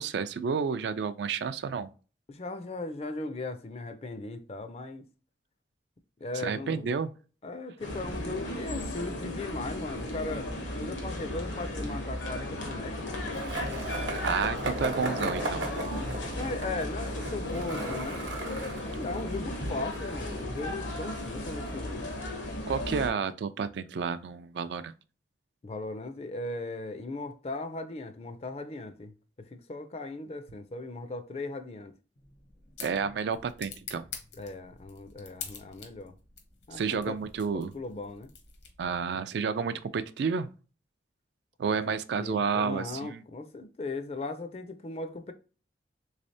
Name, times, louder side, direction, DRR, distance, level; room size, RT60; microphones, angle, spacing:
voice 1, 0.0-1.9 6.3-7.1 14.2-15.6 22.7-24.9 32.8-34.1 36.7-37.7 38.8-40.5 41.6-43.2, right 5 dB, 70° right, 0.3 m, -30 dB
voice 2, 2.3-5.1 6.2-6.9 7.4-10.5 10.8-13.1 16.3-18.3 18.8-22.1 25.6-29.1 29.4-31.9 34.4-36.1 36.7-37.2 37.5-38.3 42.2-45.3, left 2 dB, 35° left, 0.4 m, -38 dB
sound 1, 7.8-23.1, left 1 dB, 90° left, 1.1 m, -35 dB
Skateboard, 13.3-21.3, right 1 dB, 90° right, 0.8 m, -37 dB
sound 2, 32.1-39.1, left 6 dB, 70° left, 0.8 m, -47 dB
3.4 x 3.2 x 2.6 m
head